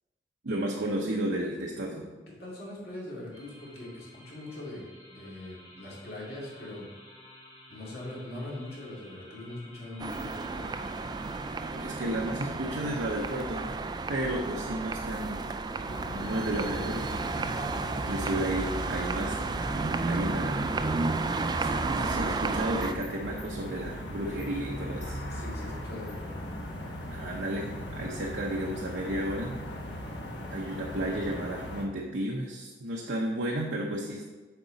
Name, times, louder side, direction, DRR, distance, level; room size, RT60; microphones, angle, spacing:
voice 1, 0.4-2.1 11.6-13.7 14.1-15.4 16.1-17.1 17.9-20.6 21.5-25.2 27.1-29.6 30.5-34.2, right 1 dB, 85° right, -2 dB, 0.8 m, -33 dB
voice 2, 2.4-6.8 7.7-10.9 25.3-26.5, left 1 dB, 60° left, -5 dB, 2.4 m, -41 dB
sound 1, 3.3-13.2, left 1 dB, 30° left, 1.5 m, -52 dB
sound 2, 10.0-22.9, right 3 dB, 25° right, 0.3 m, -32 dB
sound 3, 15.9-31.9, left 1 dB, 90° left, 1.1 m, -39 dB
8.2 x 4.9 x 4.0 m, 1.3 s
head